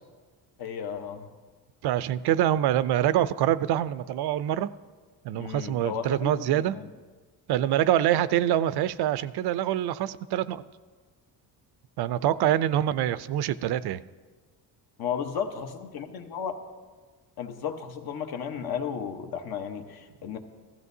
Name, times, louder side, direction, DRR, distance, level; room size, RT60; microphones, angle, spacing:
voice 1, 0.6-1.3 5.3-6.9 15.0-16.6 17.4-20.4, left 7 dB, 65° left, 1.1 m, -34 dB
voice 2, 1.8-4.7 5.2-6.7 7.5-10.6 12.0-14.0, right 12 dB, 75° right, 0.5 m, -25 dB
15.5 x 13.5 x 2.7 m
cardioid pair, 130°, 39 cm